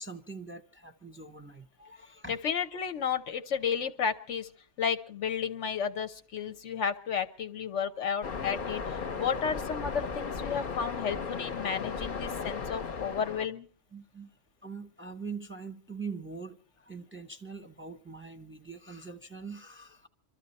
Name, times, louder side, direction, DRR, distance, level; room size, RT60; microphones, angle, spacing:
voice 1, 0.0-2.4 13.9-20.1, right 4 dB, 15° right, 4 dB, 0.6 m, -43 dB
voice 2, 2.3-4.5 4.8-8.8 9.1-13.7, left 7 dB, 90° left, 9 dB, 1.3 m, -32 dB
Waves surf, 8.2-13.5, left 5 dB, 50° left, 1.0 m, -36 dB
24.0 x 13.0 x 4.2 m, 0.39 s
omnidirectional pair, 1.2 m